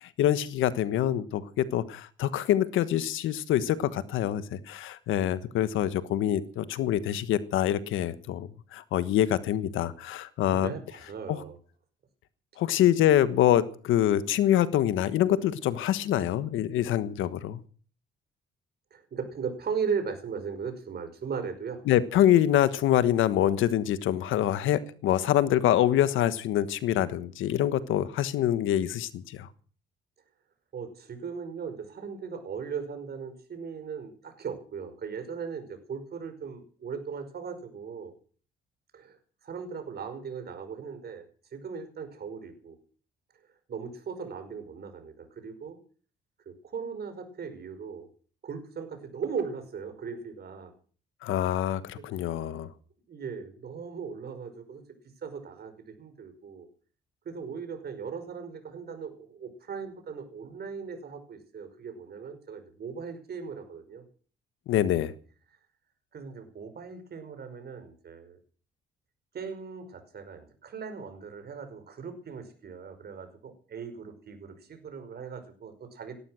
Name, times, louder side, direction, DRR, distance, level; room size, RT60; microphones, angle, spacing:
voice 1, 0.0-10.7 11.3-11.4 12.6-17.6 21.9-29.5 51.2-52.7 64.7-65.1, left 11 dB, 85° left, 14 dB, 1.3 m, -25 dB
voice 2, 10.5-11.6 18.9-21.8 30.7-38.1 38.9-39.2 39.4-41.2 41.5-42.8 43.7-45.8 46.5-48.1 48.4-50.7 51.9-52.0 53.1-54.8 55.2-56.7 57.3-64.0 66.1-68.4 69.3-76.2, right 6 dB, 55° right, 8 dB, 5.3 m, -38 dB
18.0 x 12.5 x 6.4 m, 0.43 s
cardioid pair, 90°, 20 cm